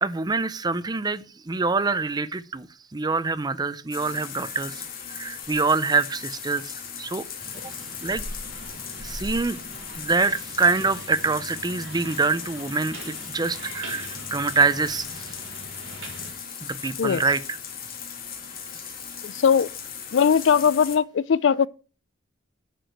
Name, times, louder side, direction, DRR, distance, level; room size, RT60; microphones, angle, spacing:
voice 1, 0.0-2.7 2.9-4.8 5.1-7.2 8.0-8.2 9.0-9.6 10.0-15.1 16.6-17.6, right 4 dB, 20° right, 0.5 m, -25 dB
sound 1, 3.9-21.0, left 6 dB, 45° left, 2.0 m, -37 dB
sound 2, 7.4-16.3, right 2 dB, 70° right, 4.6 m, -43 dB
voice 2, 19.2-19.7 20.1-21.7, left 7 dB, 65° left, 0.4 m, -20 dB
10.5 x 4.8 x 6.5 m
head